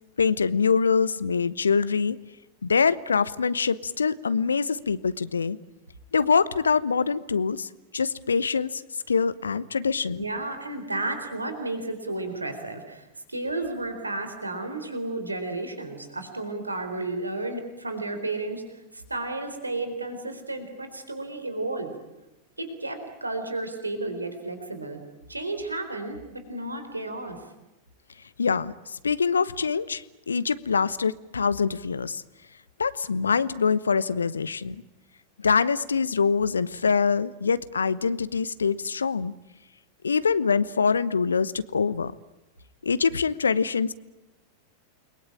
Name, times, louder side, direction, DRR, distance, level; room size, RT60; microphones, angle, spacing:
voice 1, 0.2-2.2 2.6-5.6 6.1-8.8 9.1-10.3 28.4-32.2 32.8-34.8 35.4-39.3 40.0-42.1 42.8-43.9, left 5 dB, 75° left, 17 dB, 1.0 m, -24 dB
voice 2, 10.2-21.9 22.6-25.0 25.3-27.5, right 2 dB, 80° right, 7 dB, 4.1 m, -32 dB
29.5 x 22.5 x 8.9 m, 0.97 s
figure-of-eight pair, 90°, 0 cm